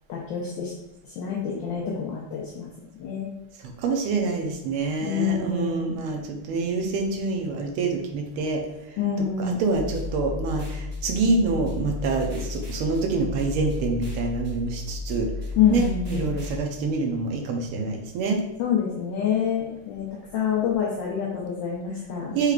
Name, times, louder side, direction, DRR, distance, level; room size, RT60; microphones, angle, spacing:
voice 1, 0.1-0.7 1.0-2.7 3.0-3.3 5.0-6.0 9.0-9.6 15.6-16.3 18.6-20.1 20.3-22.4, left 7 dB, 70° left, -3 dB, 1.2 m, -26 dB
voice 2, 3.8-8.6 9.4-15.3 15.7-18.4 22.3-22.5, right 3 dB, 80° right, 2 dB, 1.6 m, -26 dB
sound 1, 9.7-16.6, left 3 dB, 45° right, 1.1 m, -33 dB
4.8 x 3.2 x 2.4 m, 0.91 s
omnidirectional pair, 2.4 m